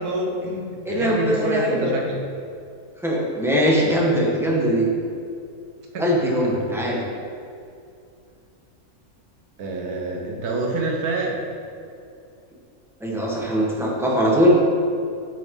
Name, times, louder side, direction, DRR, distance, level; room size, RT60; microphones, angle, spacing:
voice 1, 0.0-2.2 5.9-7.0 9.6-11.4, right 2 dB, 90° right, 0 dB, 1.7 m, -27 dB
voice 2, 0.8-1.9 3.0-4.9 6.0-7.0 13.0-14.6, equal, ahead, -4 dB, 1.4 m, -21 dB
8.3 x 6.5 x 3.9 m, 2.5 s
omnidirectional pair, 1.6 m